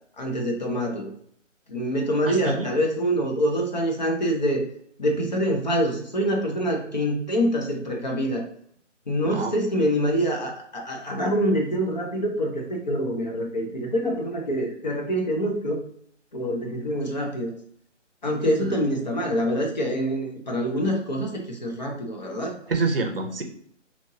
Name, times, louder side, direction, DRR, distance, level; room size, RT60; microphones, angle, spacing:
voice 1, 0.2-1.1 1.7-4.7 5.0-8.5 9.1-15.8 16.3-17.6 18.2-22.5, equal, 35° left, 1 dB, 0.6 m, -25 dB
voice 2, 2.3-2.7 9.2-9.6 18.6-18.8 22.7-23.4, right 3 dB, 50° right, 4 dB, 0.7 m, -27 dB
4.2 x 3.0 x 2.8 m, 0.65 s
figure-of-eight pair, 150°, 38 cm